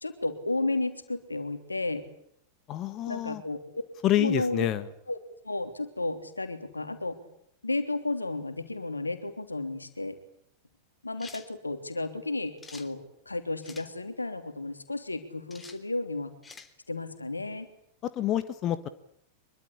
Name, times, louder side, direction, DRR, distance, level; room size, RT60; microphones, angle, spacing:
voice 1, 0.0-2.0 3.1-3.8 4.2-4.7 5.1-5.2 5.4-7.2 7.6-10.2 11.0-16.3 16.9-17.7, left 2 dB, 80° left, 8 dB, 3.3 m, -33 dB
voice 2, 2.7-3.4 4.0-4.8 18.0-18.9, left 12 dB, 35° left, 12 dB, 1.5 m, -27 dB
sound 1, 11.2-11.5 12.6-12.9 13.6-13.9 15.5-15.8 16.4-16.7, left 4 dB, 15° left, 3.2 m, -47 dB
25.5 x 23.0 x 8.7 m, 0.69 s
figure-of-eight pair, 90°, 0 cm